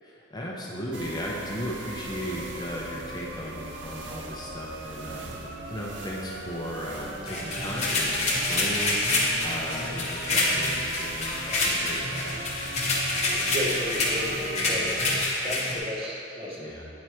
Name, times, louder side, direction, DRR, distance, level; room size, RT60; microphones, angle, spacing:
voice 1, 0.0-12.3 16.6-16.9, equal, 20° left, -3 dB, 0.6 m, -36 dB
sound 1, 0.9-15.2, right 2 dB, 90° right, 0.6 m, -39 dB
sound 2, 7.3-15.8, left 2 dB, 40° left, 0.9 m, -27 dB
voice 2, 13.3-15.0 15.4-16.7, left 1 dB, 30° right, -4 dB, 1.0 m, -33 dB
9.4 x 4.4 x 3.1 m, 2.6 s
head